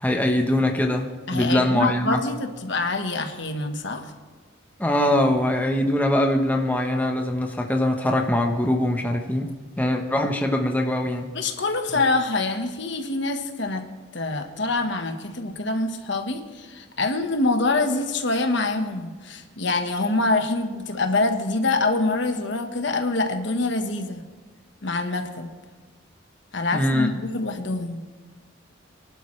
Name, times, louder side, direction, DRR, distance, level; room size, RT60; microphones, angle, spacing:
voice 1, 0.0-2.2 4.8-9.5 9.8-11.3 26.7-27.1, left 1 dB, 10° left, 2 dB, 1.0 m, -22 dB
voice 2, 1.3-4.1 11.3-13.8 14.1-24.2 24.8-25.5 26.5-28.0, left 2 dB, 60° left, 5 dB, 1.3 m, -25 dB
24.5 x 11.5 x 3.3 m, 1.4 s
head